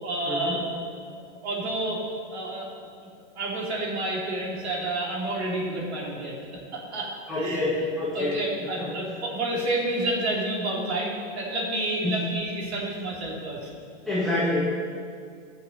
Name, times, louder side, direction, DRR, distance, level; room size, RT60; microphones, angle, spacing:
voice 1, 0.0-0.6 1.4-2.0 2.3-2.7 3.3-6.4 6.7-7.1 7.4-7.8 8.1-13.7, right 1 dB, 65° right, -3 dB, 3.2 m, -29 dB
voice 2, 7.3-8.9 12.0-12.2 14.0-14.7, left 2 dB, ahead, -11 dB, 1.5 m, -27 dB
16.5 x 6.6 x 5.4 m, 2.3 s
supercardioid pair, 180°, 35 cm